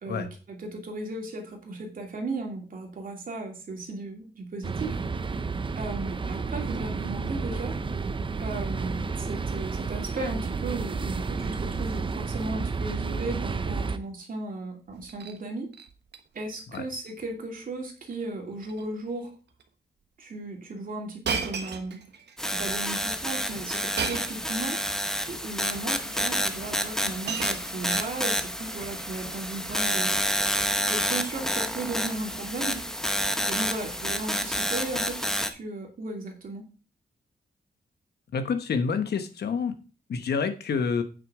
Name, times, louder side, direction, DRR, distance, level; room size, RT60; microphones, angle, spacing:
voice 1, 0.0-5.0 5.8-7.8 8.4-15.7 16.3-19.3 20.2-22.0 22.5-25.0 25.3-30.2 30.8-32.9 33.5-36.6, right 2 dB, 55° right, 2 dB, 2.7 m, -36 dB
sound 1, 4.6-14.0, right 4 dB, 30° right, 0.6 m, -31 dB
Shatter, 14.9-15.4 15.7-16.2 16.5-16.8 17.1-17.2 18.0-18.3 18.6-18.9 19.6-19.7 21.2-22.4 24.0-24.5 25.5-25.6 26.6-26.7 27.0-28.5 29.4-29.7, right 6 dB, 75° right, 1.3 m, -35 dB
sound 2, 22.4-35.5, equal, 5° left, 0.9 m, -29 dB
voice 2, 38.3-39.7 40.1-41.0, left 5 dB, 70° left, 8 dB, 1.1 m, -28 dB
9.1 x 6.2 x 4.9 m, 0.35 s
wide cardioid pair, 140°, 18 cm